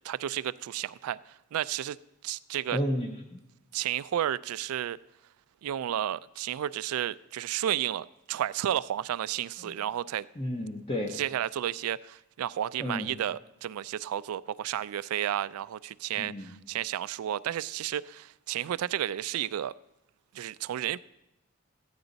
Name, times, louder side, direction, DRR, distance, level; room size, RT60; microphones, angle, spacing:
voice 1, 0.0-1.2 1.5-2.0 2.2-2.8 3.7-5.0 5.6-10.3 11.1-19.8 20.3-21.0, right 11 dB, 90° right, 0.3 m, -32 dB
voice 2, 2.7-3.4 9.6-9.8 10.4-11.1 12.8-13.1 16.2-16.5, equal, 25° left, 0.8 m, -32 dB
14.0 x 9.6 x 4.0 m
head